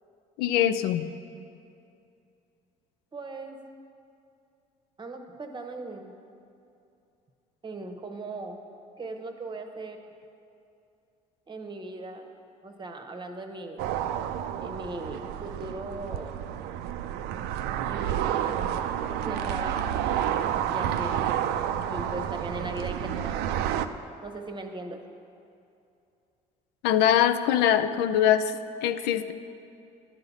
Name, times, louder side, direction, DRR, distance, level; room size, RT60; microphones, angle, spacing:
voice 1, 0.4-1.1 26.8-29.3, left 10 dB, 75° left, 11 dB, 0.4 m, -23 dB
voice 2, 3.1-3.6 5.0-6.1 7.6-8.6 9.0-10.0 11.5-12.3 12.6-13.8 14.6-16.4 17.9-18.9 19.2-20.2 20.6-21.2 21.9-23.5 24.2-25.0, right 2 dB, 25° right, 5 dB, 0.9 m, -38 dB
sound 1, 13.8-23.9, right 10 dB, 70° right, 0.4 m, -30 dB
10.5 x 4.0 x 7.1 m, 2.6 s
supercardioid pair, 70°, 17 cm